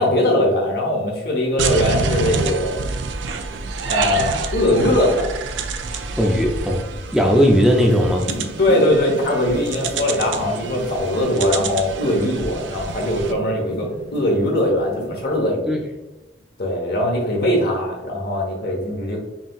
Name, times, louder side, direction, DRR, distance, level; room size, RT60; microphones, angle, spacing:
voice 1, 0.0-2.8 3.9-5.3 8.6-15.7 16.6-19.2, left 1 dB, 55° left, 0 dB, 1.0 m, -20 dB
sound 1, 1.6-13.3, right 4 dB, 85° right, 0.4 m, -28 dB
voice 2, 5.9-6.9 7.1-8.3 15.7-15.8, equal, 5° right, 1 dB, 0.4 m, -17 dB
sound 2, 7.8-15.5, equal, 85° left, 1.1 m, -36 dB
5.7 x 2.8 x 2.3 m, 1.0 s
head